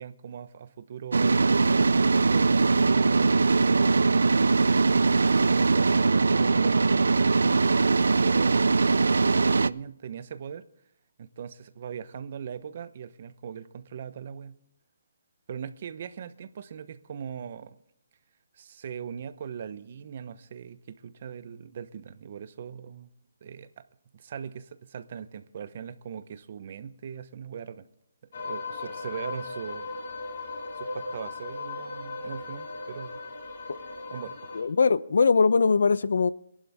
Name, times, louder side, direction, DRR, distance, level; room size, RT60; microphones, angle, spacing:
voice 1, 0.0-1.6 2.2-4.0 4.9-8.7 9.0-10.6 11.2-14.6 15.5-17.8 18.5-23.1 23.4-23.8 24.1-27.9 28.4-29.9 30.7-33.2 34.1-34.4, right 7 dB, 45° right, 0.9 m, -40 dB
sound 1, 1.1-9.7, right 3 dB, 90° right, 0.4 m, -21 dB
sound 2, 28.3-34.6, left 3 dB, 55° left, 3.3 m, -37 dB
voice 2, 34.5-36.3, left 5 dB, 70° left, 0.6 m, -21 dB
22.5 x 11.5 x 3.6 m
hypercardioid pair, 165°, 0 cm